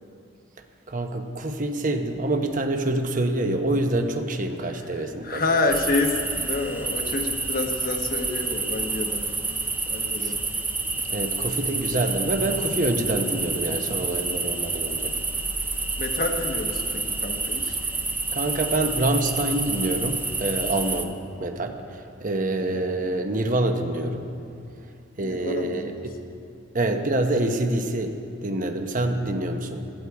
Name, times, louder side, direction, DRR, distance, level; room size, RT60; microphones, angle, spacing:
voice 1, 0.9-5.4 10.2-10.3 11.1-15.1 18.3-21.1 21.4-24.3 25.2-26.1 26.7-29.8, right 1 dB, 40° right, 5 dB, 1.0 m, -26 dB
voice 2, 5.0-9.3 9.9-10.4 16.0-17.8 22.7-22.8 25.2-26.0, left 3 dB, 45° left, 4 dB, 1.2 m, -28 dB
sound 1, 5.7-21.0, right 3 dB, 10° right, 0.7 m, -28 dB
17.0 x 13.0 x 4.8 m, 2.6 s
head